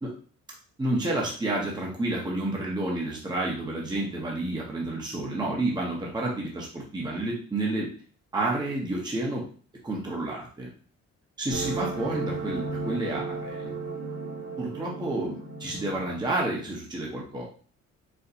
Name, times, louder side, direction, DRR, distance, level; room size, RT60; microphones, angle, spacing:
voice 1, 0.8-7.9 8.3-9.4 9.8-10.7 11.4-13.7 14.6-17.4, right 2 dB, 15° right, -3 dB, 0.8 m, -30 dB
sound 1, 11.5-16.7, right 3 dB, 55° right, 1.2 m, -35 dB
4.2 x 2.1 x 2.8 m, 0.43 s
cardioid pair, 90°, 30 cm